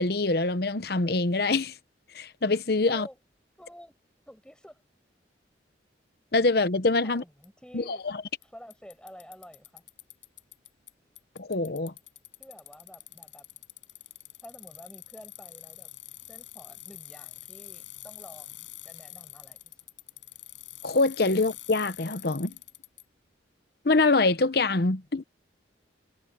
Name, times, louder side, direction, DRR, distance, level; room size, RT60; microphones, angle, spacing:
voice 1, 0.0-1.7 2.1-3.1 6.3-7.2 7.7-8.2 11.4-11.9 20.8-22.5 23.8-25.2, left 3 dB, 55° left, 0.9 m, -25 dB
voice 2, 2.9-3.2 3.6-3.9 4.2-4.8 7.0-8.1 8.4-9.8 12.4-13.5 14.4-15.9 16.3-19.8, equal, 5° left, 6.7 m, -50 dB
Bicycle, 7.4-7.5 8.4-8.5 8.7-10.9 11.2-23.0, left 16 dB, 80° left, 7.3 m, -46 dB
head